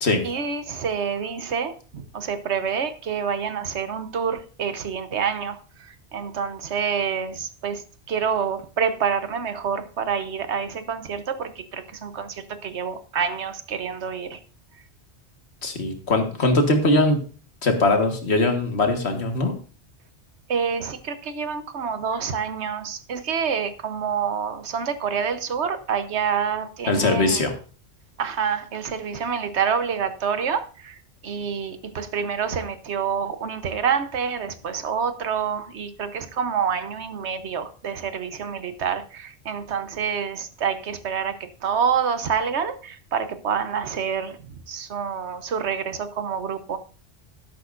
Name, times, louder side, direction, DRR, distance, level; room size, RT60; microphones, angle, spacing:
voice 1, 0.2-5.6 6.1-7.8 8.1-14.4 20.5-27.4 28.2-30.9 31.2-44.4 44.7-46.8, right 7 dB, 85° right, 1.2 m, -27 dB
voice 2, 15.6-17.2 17.6-19.6 26.9-27.5, left 2 dB, 75° left, 1.8 m, -21 dB
12.5 x 11.0 x 2.5 m
omnidirectional pair, 1.1 m